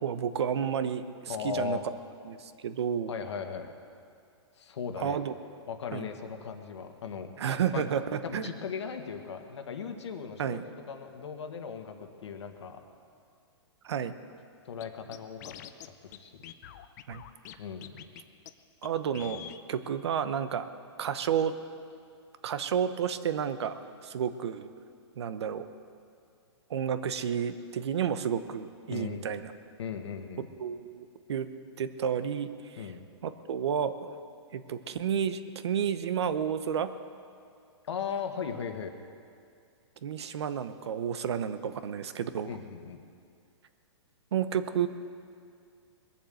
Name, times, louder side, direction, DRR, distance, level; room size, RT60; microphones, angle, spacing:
voice 1, 0.0-1.8 2.2-3.1 5.0-5.3 5.9-6.0 7.4-8.5 10.4-10.7 13.8-14.1 17.1-17.2 18.8-19.4 19.7-20.7 21.0-21.5 22.4-24.7 25.2-25.7 26.7-29.5 30.6-31.5 31.8-32.9 33.2-34.1 34.5-36.9 40.0-42.6 44.3-44.9, right 8 dB, 65° right, 11 dB, 0.9 m, -31 dB
voice 2, 1.3-1.8 3.1-3.7 4.5-5.2 5.7-7.3 7.7-7.9 8.2-12.8 14.6-15.5 16.2-16.4 17.6-18.0 28.9-29.2 29.8-30.5 32.8-33.0 37.8-38.9 42.5-43.0, left 6 dB, 70° left, 5 dB, 1.7 m, -37 dB
Scratching (performance technique), 14.8-14.9 15.1-15.9 16.1-16.2 16.4-17.6 17.8-18.2 18.5-18.6 18.8-18.9 19.1-19.6, left 11 dB, 35° left, 0.6 m, -45 dB
21.5 x 7.3 x 7.8 m, 2.3 s
hypercardioid pair, 160°, 15 cm